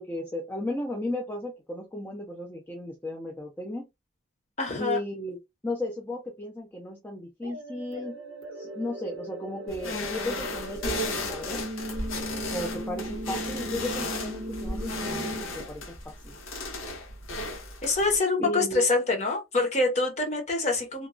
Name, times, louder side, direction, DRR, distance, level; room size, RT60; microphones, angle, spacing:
voice 1, 0.0-3.8 4.8-5.4 5.6-8.2 8.6-11.6 12.5-16.3 18.4-18.8, left 1 dB, 10° left, 0.4 m, -35 dB
voice 2, 4.6-5.0 17.8-21.1, left 3 dB, 35° left, 0.8 m, -25 dB
sound 1, 7.4-15.4, right 1 dB, 80° right, 0.5 m, -38 dB
sound 2, 9.7-18.2, left 2 dB, 90° left, 0.8 m, -35 dB
2.9 x 2.3 x 2.4 m
head